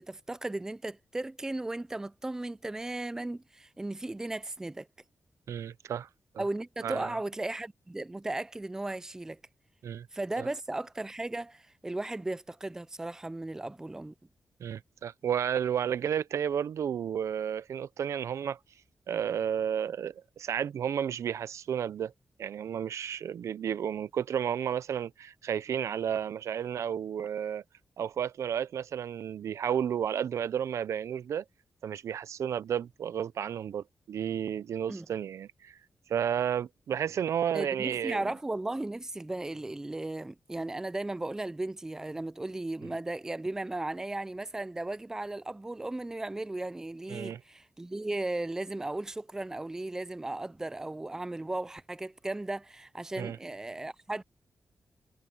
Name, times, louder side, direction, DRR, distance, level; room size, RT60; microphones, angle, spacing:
voice 1, 0.0-4.9 6.4-9.4 10.1-14.1 34.9-35.1 37.5-54.2, right 2 dB, 10° right, 0.4 m, -36 dB
voice 2, 5.5-6.1 6.3-6.4 6.8-7.1 9.8-10.1 10.4-10.5 14.6-18.6 19.1-22.1 22.4-27.6 28.0-31.4 31.8-35.8 36.1-38.3 42.8-42.9 47.1-47.4 53.2-53.4, right 8 dB, 80° right, 0.5 m, -32 dB
wide cardioid pair, 135°, 5 cm